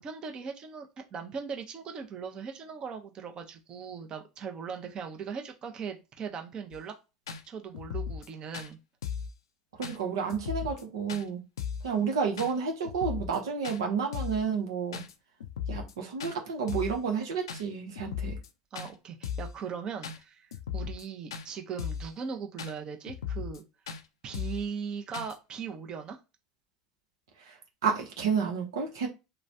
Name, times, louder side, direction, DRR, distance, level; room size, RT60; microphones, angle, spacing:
voice 1, 0.0-6.9 7.5-8.8 12.0-12.1 18.7-23.6 24.2-26.2, right 6 dB, 35° right, 0.7 m, -39 dB
sound 1, 6.7-6.8 7.3-7.4 7.7-8.3 8.5-8.7 9.0-9.3 9.8-10.0 10.3-10.8 11.1-11.2 11.6-11.9 12.4-12.5 12.8-13.4 13.6-13.8 14.1-14.4 14.9-15.1 15.4-15.9 16.2-16.3 16.7-17.0 17.5-17.6 18.0-18.5 18.7-18.9 19.2-19.5 20.0-20.2 20.5-21.0 21.3-21.5 21.8-22.1 22.6-22.7 23.1-23.6 23.9-24.0 24.3-24.6 25.1-25.3, left 7 dB, 85° left, 0.4 m, -36 dB
voice 2, 9.8-11.4 11.8-15.0 15.7-18.4 27.8-29.1, right 6 dB, 80° right, 0.9 m, -30 dB
3.0 x 2.2 x 2.6 m
hypercardioid pair, 90°, 2 cm